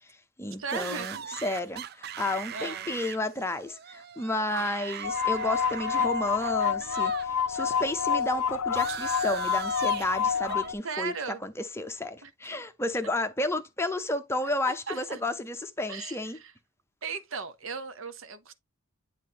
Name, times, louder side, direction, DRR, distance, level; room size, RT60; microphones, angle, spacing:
voice 1, 0.0-11.1 11.4-16.4, left 2 dB, 10° left, 0.7 m, -32 dB
voice 2, 0.6-1.2 2.5-2.9 4.5-4.7 8.9-9.0 10.8-11.4 12.2-12.3 14.7-15.2 15.9-16.5 17.0-18.5, right 5 dB, 65° right, 0.9 m, -37 dB
sound 1, 0.7-7.3 7.5-10.7, right 8 dB, 45° right, 0.4 m, -40 dB
sound 2, 5.0-10.7, left 7 dB, 80° left, 0.5 m, -28 dB
9.7 x 4.1 x 2.9 m
head